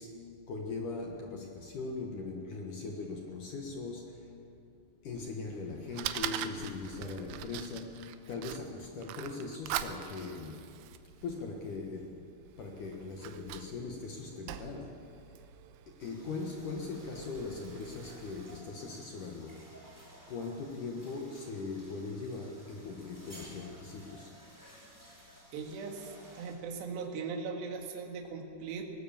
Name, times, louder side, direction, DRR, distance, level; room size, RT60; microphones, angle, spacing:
voice 1, 0.0-4.4 5.0-10.7 11.2-15.1 15.9-19.9 20.3-24.4, left 3 dB, 75° left, 1 dB, 1.9 m, -40 dB
Fire, 5.2-18.6, right 11 dB, 80° right, 3.1 m, -44 dB
sound 1, 16.0-26.6, right 1 dB, 5° right, 4.0 m, -56 dB
voice 2, 25.5-28.8, right 5 dB, 65° right, 1 dB, 3.8 m, -39 dB
20.0 x 18.5 x 7.5 m, 2.5 s
omnidirectional pair, 5.8 m